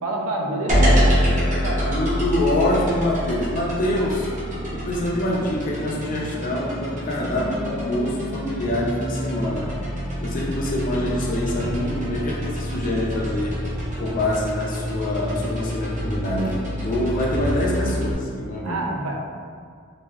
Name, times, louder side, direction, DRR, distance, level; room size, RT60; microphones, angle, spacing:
voice 1, 0.0-2.0 18.6-19.2, right 2 dB, 85° right, -1 dB, 0.4 m, -28 dB
sound 1, 0.7-18.1, equal, 35° right, 0.7 m, -26 dB
voice 2, 1.9-4.3 4.7-9.7 10.2-13.6 14.0-18.8, left 1 dB, 40° left, -2 dB, 0.4 m, -25 dB
3.1 x 2.5 x 2.3 m, 2.1 s
head